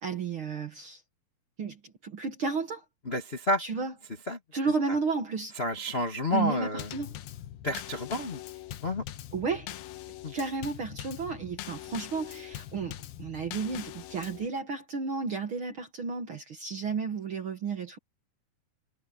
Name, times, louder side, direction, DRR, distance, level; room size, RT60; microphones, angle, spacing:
voice 1, 0.0-1.0 1.6-2.8 3.6-3.9 4.5-5.5 6.3-7.1 9.3-9.7 10.3-18.0, right 4 dB, 55° right, 1.6 m, -32 dB
voice 2, 3.0-3.6 4.3-4.4 4.9-5.0 5.6-6.9 7.6-8.4 8.8-9.0 10.2-10.3, left 1 dB, 40° left, 0.9 m, -30 dB
Drum kit / Snare drum / Bass drum, 6.8-14.5, left 13 dB, 90° left, 2.8 m, -42 dB
omnidirectional pair, 4.1 m